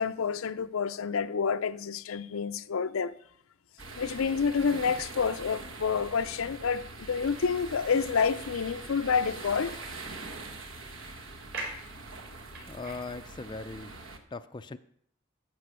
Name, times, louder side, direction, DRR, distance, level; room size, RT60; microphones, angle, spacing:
voice 1, 0.0-3.1 4.0-9.8, left 5 dB, 80° left, 0.5 m, -28 dB
sound 1, 3.8-14.2, right 3 dB, 70° right, 1.4 m, -43 dB
sound 2, 7.1-13.1, right 2 dB, 55° right, 4.2 m, -47 dB
voice 2, 12.7-14.0 14.3-14.8, left 3 dB, 20° left, 0.4 m, -39 dB
12.0 x 4.9 x 8.1 m
head